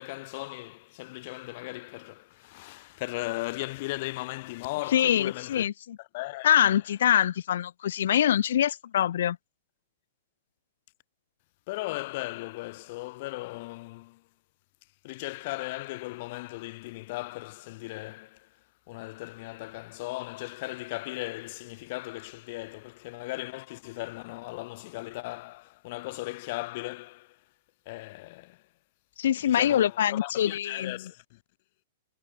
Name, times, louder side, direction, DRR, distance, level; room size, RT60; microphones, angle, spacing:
voice 1, 0.0-5.7 6.0-6.8 11.7-14.2 15.0-18.6 18.9-27.4 27.9-28.6 29.4-31.4, left 21 dB, 45° left, 2.5 m, -37 dB
voice 2, 4.9-6.0 6.4-9.4 29.2-31.0, left 10 dB, 75° left, 0.5 m, -24 dB
supercardioid pair, 160°, 0 cm